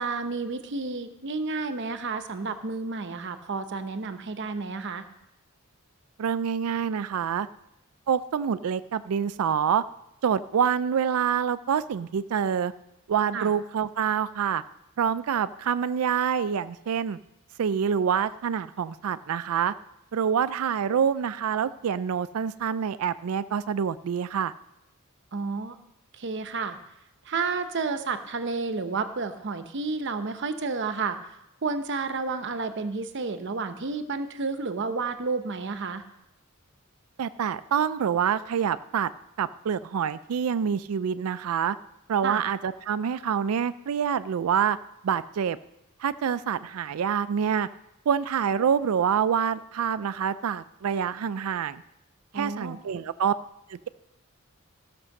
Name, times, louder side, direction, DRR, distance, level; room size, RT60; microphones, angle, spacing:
voice 1, 0.0-5.0 13.3-13.5 25.3-25.8 26.1-26.8 27.2-31.2 31.6-36.0 42.2-42.4 52.3-52.8, right 4 dB, 55° right, 9 dB, 0.8 m, -31 dB
voice 2, 6.2-7.5 8.1-9.8 10.2-12.7 13.1-14.6 15.0-17.2 17.6-19.7 20.1-24.5 37.2-39.1 39.4-41.8 42.1-44.8 45.0-45.6 46.0-47.7 48.1-51.8 52.3-53.3 53.7-53.9, right 7 dB, 85° right, 14 dB, 0.4 m, -26 dB
14.5 x 6.0 x 6.5 m, 0.86 s
head